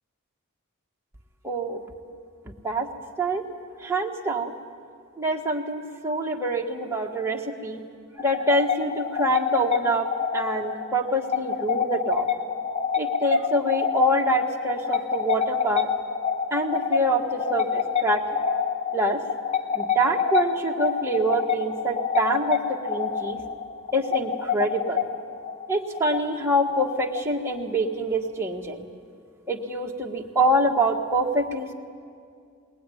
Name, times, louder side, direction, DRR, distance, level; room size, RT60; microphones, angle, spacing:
voice 1, 1.4-1.8 2.6-2.9 3.2-3.4 3.8-4.5 5.2-7.8 8.2-12.3 13.0-15.9 16.5-18.4 18.9-19.2 19.7-23.4 23.9-25.0 25.7-28.8 29.5-31.7, right 1 dB, 10° right, 0 dB, 1.6 m, -25 dB
sound 1, 8.2-27.6, left 7 dB, 30° left, 1.1 m, -27 dB
21.5 x 18.5 x 10.0 m, 2.3 s
head